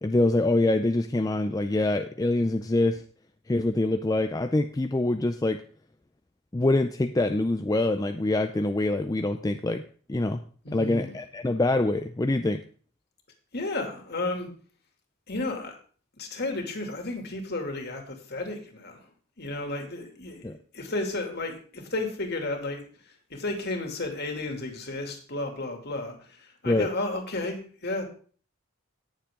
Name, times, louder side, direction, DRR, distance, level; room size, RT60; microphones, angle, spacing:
voice 1, 0.0-3.0 3.5-5.6 6.5-9.8 10.1-10.4 10.7-12.6 20.4-20.6 26.7-26.9, left 2 dB, 15° left, 7 dB, 0.4 m, -25 dB
voice 2, 10.6-11.1 13.5-14.5 15.3-15.8 16.2-19.1 19.4-28.0, left 2 dB, 50° left, 3 dB, 2.6 m, -33 dB
18.0 x 7.3 x 3.7 m, 0.43 s
head